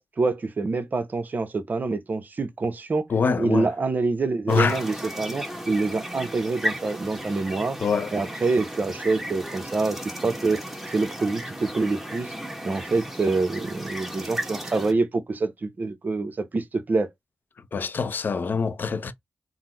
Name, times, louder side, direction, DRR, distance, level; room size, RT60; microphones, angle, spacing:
voice 1, 0.0-3.1 3.4-7.8 8.1-10.6 10.9-12.3 12.6-17.1, right 3 dB, 55° right, 0.7 m, -26 dB
voice 2, 3.1-3.7 4.5-4.8 7.8-8.1 17.7-19.1, left 5 dB, 65° left, 0.5 m, -24 dB
sound 1, 4.5-14.9, equal, 10° right, 1.2 m, -35 dB
3.7 x 2.0 x 3.0 m
cardioid pair, 50°, 4 cm